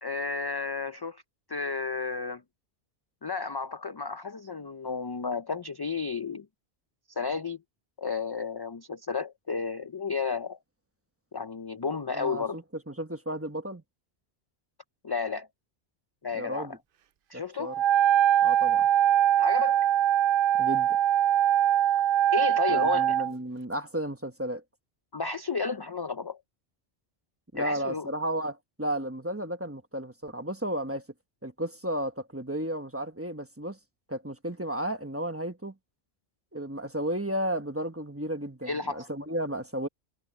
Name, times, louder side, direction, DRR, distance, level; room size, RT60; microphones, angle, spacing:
voice 1, 0.0-1.2 1.5-2.4 3.2-6.5 7.1-7.6 8.0-10.6 11.3-12.6 15.0-15.5 16.2-16.8 17.3-17.8 19.4-19.9 22.3-23.1 25.1-26.4 27.5-28.1 38.6-39.1, left 5 dB, 35° left, 0.4 m, -32 dB
voice 2, 12.1-13.8 16.3-16.8 17.6-17.8 18.4-18.9 20.6-21.0 22.7-24.6 27.5-31.0 31.4-33.8 34.1-35.7 36.5-39.9, right 1 dB, 15° right, 1.1 m, -33 dB
Wind instrument woodwind instrument, 17.7-23.3, right 11 dB, 60° right, 0.7 m, -22 dB
omnidirectional pair, 1.1 m